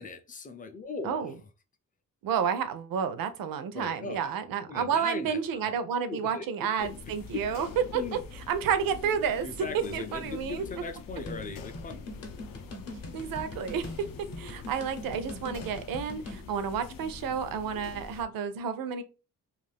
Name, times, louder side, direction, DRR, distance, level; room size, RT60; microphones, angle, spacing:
voice 1, 0.0-1.3 3.7-4.3 4.7-5.7 6.1-7.5 7.9-8.2 9.4-12.0, left 4 dB, 25° left, 0.4 m, -39 dB
voice 2, 2.2-7.7 7.9-8.2 8.5-9.5 9.9-10.6 13.1-13.9 14.4-19.0, right 7 dB, 85° right, 0.5 m, -30 dB
sound 1, 6.8-18.2, left 5 dB, 80° left, 0.5 m, -44 dB
sound 2, 11.3-16.4, left 2 dB, 45° left, 0.7 m, -43 dB
2.5 x 2.4 x 3.3 m
cardioid pair, 135°, 34 cm